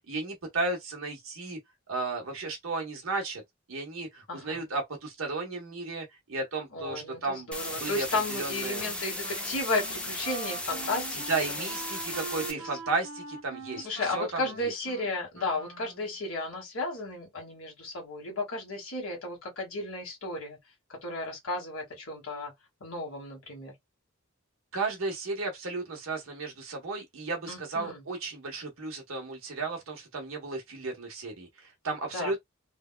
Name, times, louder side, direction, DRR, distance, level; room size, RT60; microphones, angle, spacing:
voice 1, 0.1-1.6 1.9-3.4 3.7-8.8 11.1-14.7 24.7-32.4, right 3 dB, 70° right, 1.1 m, -34 dB
voice 2, 4.3-4.7 6.7-11.2 11.6-11.7 12.4-12.7 13.8-20.6 20.9-22.5 22.8-23.7 27.5-28.0 32.1-32.3, left 2 dB, 75° left, 1.4 m, -34 dB
sound 1, 7.5-12.5, left 1 dB, 5° left, 0.5 m, -36 dB
Wind instrument woodwind instrument, 8.8-16.2, right 4 dB, 85° right, 1.0 m, -43 dB
3.3 x 2.2 x 2.2 m
head